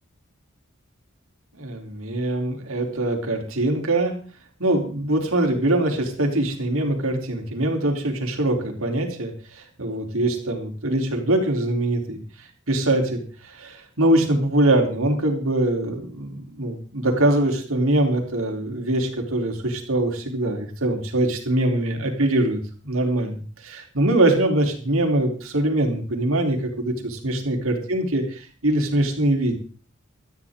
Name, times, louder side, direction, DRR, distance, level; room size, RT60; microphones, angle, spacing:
voice 1, 1.6-4.1 4.6-12.2 12.7-29.5, right 1 dB, 85° right, 3 dB, 3.5 m, -23 dB
17.5 x 13.5 x 3.7 m, 0.40 s
head